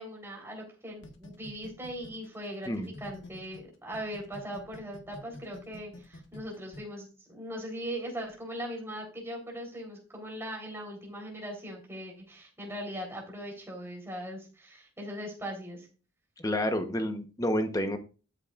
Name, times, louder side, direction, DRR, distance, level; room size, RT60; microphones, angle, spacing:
voice 1, 0.0-15.9, equal, 10° right, -1 dB, 3.9 m, -40 dB
sound 1, 1.0-3.6 3.9-6.8, left 1 dB, 60° left, 1.5 m, -47 dB
voice 2, 16.4-18.0, equal, 15° left, 7 dB, 1.1 m, -29 dB
12.5 x 9.0 x 2.5 m, 0.34 s
head